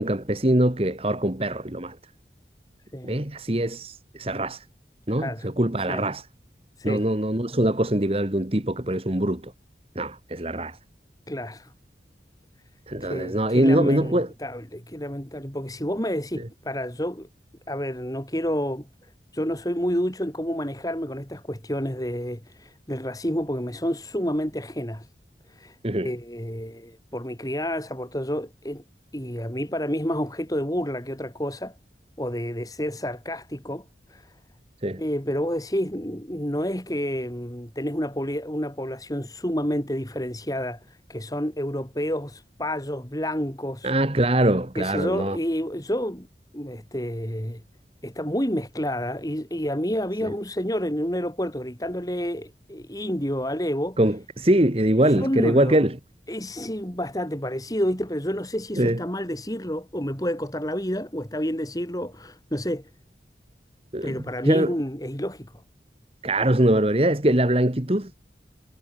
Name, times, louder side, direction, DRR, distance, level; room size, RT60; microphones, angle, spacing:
voice 1, 0.0-2.0 3.0-4.6 5.1-6.2 6.8-9.5 9.9-10.8 12.9-14.3 16.4-16.5 25.8-26.1 34.8-35.0 43.8-45.4 50.2-50.3 54.0-56.0 58.8-59.0 63.9-64.1 64.4-64.7 66.2-68.2, right 1 dB, 35° right, 1.7 m, -23 dB
voice 2, 5.2-5.5 5.9-6.0 6.8-7.1 11.3-11.7 13.0-17.3 17.7-18.9 19.3-25.1 25.5-25.8 26.0-28.8 29.1-31.7 32.2-34.3 35.0-43.9 44.8-46.3 46.5-47.6 48.0-54.0 55.0-55.9 56.3-62.9 64.0-65.5, equal, 20° left, 4.4 m, -29 dB
head